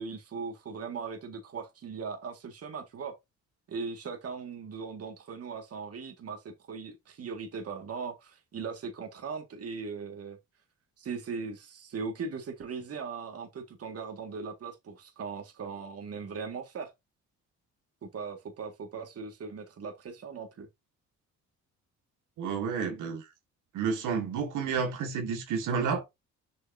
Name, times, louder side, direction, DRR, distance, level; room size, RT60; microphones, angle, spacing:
voice 1, 0.0-3.2 3.7-10.4 11.0-16.9 18.0-20.7, right 5 dB, 50° right, 2.1 m, -39 dB
voice 2, 22.4-23.2 23.7-26.0, right 6 dB, 80° right, 2.0 m, -30 dB
7.0 x 5.4 x 2.8 m
cardioid pair, 90°, 30 cm